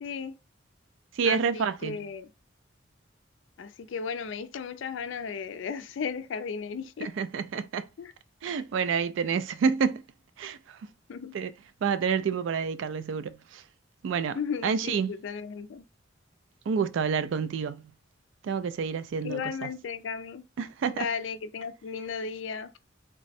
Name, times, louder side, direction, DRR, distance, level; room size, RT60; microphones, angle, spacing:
voice 1, 0.0-0.4 1.2-2.3 3.6-7.1 8.0-8.1 11.1-11.4 14.3-15.8 19.2-20.4 20.9-22.7, left 6 dB, 70° left, 0.4 m, -35 dB
voice 2, 1.2-2.1 7.0-7.9 8.4-10.0 10.4-10.6 11.3-11.5 11.8-13.6 14.0-15.1 16.7-17.9 18.4-19.7 20.6-21.1, right 6 dB, 70° right, 0.3 m, -28 dB
3.6 x 2.0 x 4.1 m
head